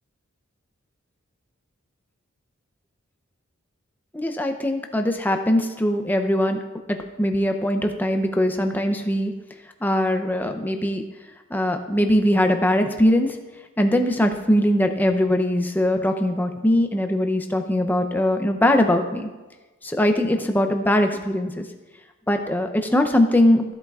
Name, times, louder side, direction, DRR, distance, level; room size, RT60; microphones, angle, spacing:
voice 1, 4.1-6.6 6.9-9.3 9.8-11.0 11.5-13.4 13.8-19.3 19.8-21.7 22.3-23.7, left 1 dB, 10° left, 5 dB, 0.5 m, -21 dB
15.5 x 7.9 x 2.4 m, 1.2 s
head